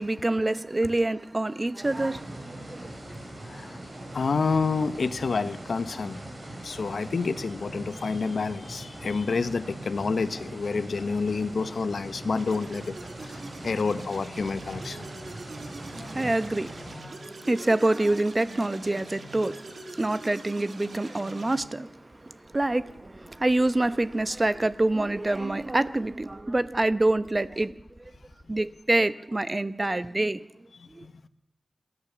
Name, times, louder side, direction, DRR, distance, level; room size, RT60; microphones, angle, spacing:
voice 1, 0.0-2.9 15.8-27.8 28.5-30.4 30.9-31.1, right 2 dB, 30° right, 0.9 m, -26 dB
sound 1, 1.8-17.0, right 1 dB, 45° right, 5.8 m, -41 dB
voice 2, 3.4-3.8 4.1-6.2 6.6-12.9 13.2-15.1 16.0-16.1 31.0-31.1, left 4 dB, 90° left, 1.0 m, -28 dB
sound 2, 12.4-21.6, right 2 dB, 75° right, 3.0 m, -43 dB
sound 3, 22.4-28.7, equal, 5° right, 3.2 m, -53 dB
28.0 x 13.0 x 7.0 m
wide cardioid pair, 85°, 0 cm